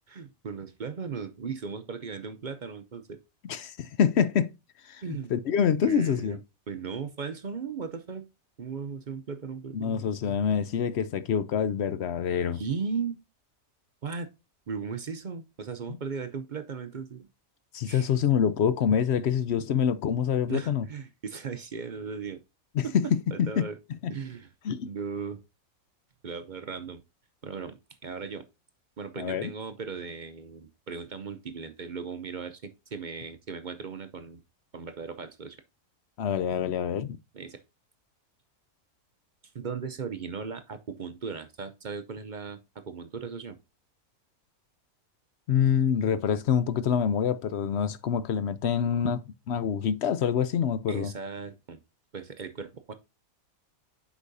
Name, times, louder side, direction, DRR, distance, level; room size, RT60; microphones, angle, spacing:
voice 1, 0.1-3.2 5.0-5.3 5.8-6.4 6.7-8.2 8.6-10.0 12.5-13.2 14.0-14.3 14.7-17.3 17.8-18.1 20.5-22.4 22.8-23.8 24.1-24.5 24.8-25.4 26.2-27.0 27.4-28.4 29.0-34.4 34.7-35.6 37.3-37.6 39.5-43.6 50.9-51.8 52.1-52.9, right 5 dB, 50° right, 0.6 m, -37 dB
voice 2, 3.5-4.5 4.8-5.0 5.3-6.4 9.7-12.6 17.7-20.8 22.7-23.0 23.4-23.7 24.0-24.1 24.6-24.9 29.2-29.5 36.2-37.2 45.5-51.1, left 8 dB, 65° left, 0.7 m, -26 dB
8.2 x 6.1 x 2.6 m
omnidirectional pair, 1.5 m